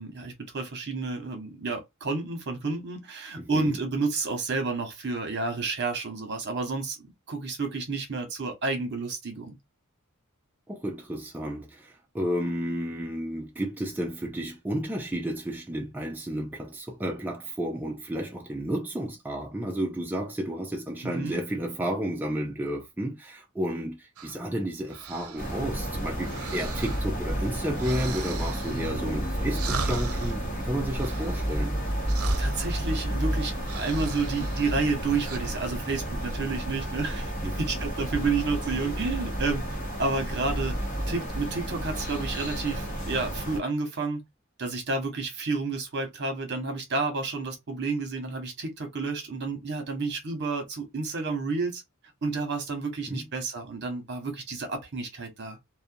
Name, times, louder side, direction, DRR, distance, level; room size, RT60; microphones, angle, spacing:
voice 1, 0.0-9.6 21.0-21.4 28.7-29.0 32.4-39.6 40.0-44.2 44.6-51.8 52.2-55.6, right 3 dB, 55° right, 1.0 m, -30 dB
voice 2, 3.4-3.8 10.7-31.7 37.4-37.6 53.1-53.2, equal, 10° right, 0.4 m, -32 dB
sound 1, 24.2-35.4, right 5 dB, 80° right, 0.5 m, -39 dB
sound 2, 25.4-43.6, equal, 40° left, 0.9 m, -31 dB
2.5 x 2.2 x 2.5 m
head